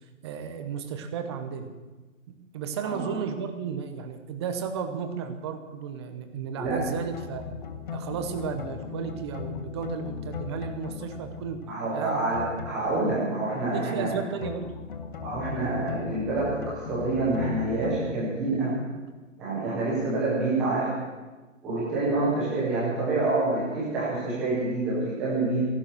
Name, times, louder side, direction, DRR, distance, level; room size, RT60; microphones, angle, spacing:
voice 1, 0.2-1.7 2.3-7.5 7.9-11.6 11.9-12.3 12.7-12.8 13.7-14.7, right 7 dB, 20° right, 7 dB, 1.0 m, -33 dB
sound 1, 6.6-14.1 14.4-18.2, left 6 dB, 35° left, 1.3 m, -38 dB
voice 2, 11.7-14.1 15.2-18.8 19.4-20.9 21.6-25.6, right 2 dB, ahead, -8 dB, 0.5 m, -27 dB
15.0 x 11.5 x 6.3 m, 1.2 s
figure-of-eight pair, 145°, 40 cm